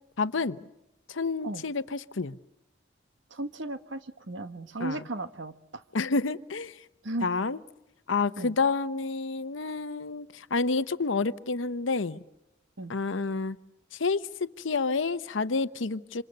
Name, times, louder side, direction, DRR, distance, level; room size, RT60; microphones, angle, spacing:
voice 1, 0.2-0.6 1.1-2.4 4.8-5.0 5.9-6.8 7.2-7.6 8.1-12.2 12.9-13.6 13.9-16.2, left 4 dB, 75° left, 0.8 m, -29 dB
voice 2, 3.3-4.0 4.3-5.5 7.0-7.3 8.4-8.5 12.8-12.9, right 2 dB, 70° right, 1.4 m, -35 dB
28.0 x 26.5 x 6.6 m
head